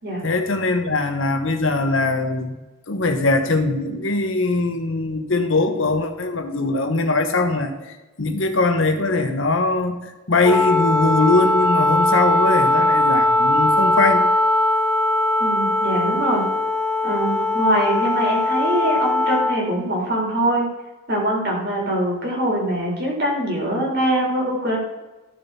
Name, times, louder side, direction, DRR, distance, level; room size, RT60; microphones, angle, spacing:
voice 1, 0.2-2.5 2.9-7.7 8.2-10.0 10.3-14.2, left 3 dB, 65° left, 6 dB, 1.2 m, -21 dB
Wind instrument woodwind instrument, 10.4-19.6, left 1 dB, 5° left, 0.9 m, -20 dB
voice 2, 15.4-16.5 17.0-20.7 21.1-24.8, right 1 dB, 50° right, -2 dB, 3.7 m, -23 dB
14.0 x 6.9 x 4.2 m, 1.1 s
head